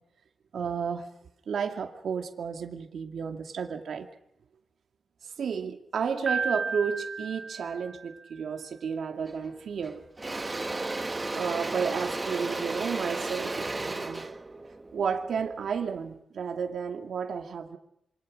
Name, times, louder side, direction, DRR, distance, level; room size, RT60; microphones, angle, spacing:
voice 1, 0.5-1.1 1.5-4.1 5.2-10.0 11.3-14.3 14.9-17.8, right 6 dB, 65° right, 5 dB, 2.4 m, -32 dB
Piano, 6.3-8.4, right 4 dB, 35° right, 1.2 m, -33 dB
Engine / Drill, 9.3-9.5 9.8-16.0, right 2 dB, 20° right, 1.5 m, -34 dB
27.0 x 25.0 x 6.5 m, 0.76 s
wide cardioid pair, 150°, 0 cm